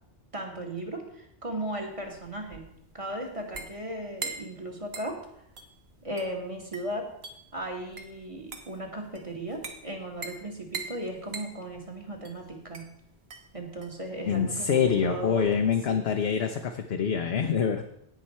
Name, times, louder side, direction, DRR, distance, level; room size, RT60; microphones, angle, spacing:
voice 1, 0.3-2.7 2.9-5.2 6.0-7.1 7.5-12.8 13.5-16.0, right 1 dB, 30° right, 1 dB, 1.9 m, -36 dB
sound 1, 1.7-15.7, right 4 dB, 65° right, 1.4 m, -44 dB
voice 2, 14.3-17.8, left 7 dB, 70° left, 4 dB, 1.0 m, -25 dB
17.0 x 6.0 x 4.3 m, 0.73 s
omnidirectional pair, 1.1 m